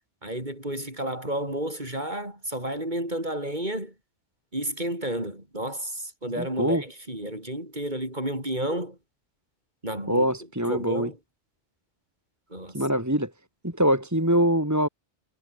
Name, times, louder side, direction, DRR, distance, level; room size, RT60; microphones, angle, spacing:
voice 1, 0.2-3.9 4.5-9.0 9.8-10.3 10.7-11.2 12.5-12.8, right 1 dB, 40° right, 7.8 m, -31 dB
voice 2, 6.4-6.8 10.1-11.1 12.7-13.3 13.6-14.9, equal, 15° right, 2.8 m, -23 dB
omnidirectional pair, 1.2 m